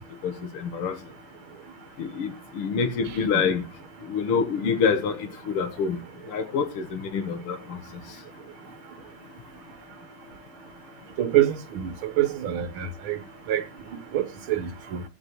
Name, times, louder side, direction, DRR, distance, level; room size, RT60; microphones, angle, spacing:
voice 1, 0.2-0.9 2.0-3.6 4.1-6.0 6.3-7.8, left 6 dB, 85° left, 2.2 m, -26 dB
voice 2, 11.2-11.9 12.2-13.2 13.5-13.6 14.1-15.0, right 12 dB, 70° right, 1.9 m, -25 dB
20.5 x 8.1 x 3.0 m
omnidirectional pair, 2.4 m